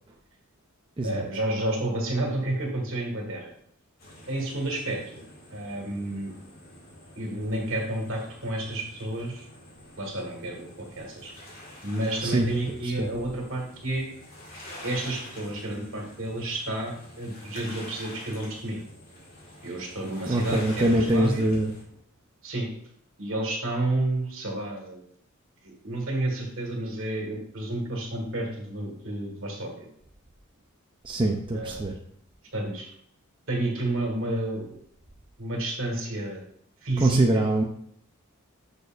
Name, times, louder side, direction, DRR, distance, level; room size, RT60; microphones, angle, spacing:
voice 1, 1.0-3.5 4.3-5.2 5.5-6.3 7.2-9.5 10.0-11.3 11.8-14.1 14.8-18.8 19.6-21.4 22.4-22.7 23.2-25.0 25.6-29.8 31.5-31.8 32.5-32.9 33.5-34.7 35.4-36.4 36.8-37.5, right 1 dB, 65° right, 0 dB, 1.8 m, -30 dB
sound 1, 4.0-21.8, left 1 dB, 45° left, 2.1 m, -47 dB
voice 2, 20.3-21.7 31.0-31.9 37.0-37.6, right 1 dB, 25° right, 0 dB, 0.6 m, -24 dB
6.6 x 6.6 x 2.5 m, 0.67 s
head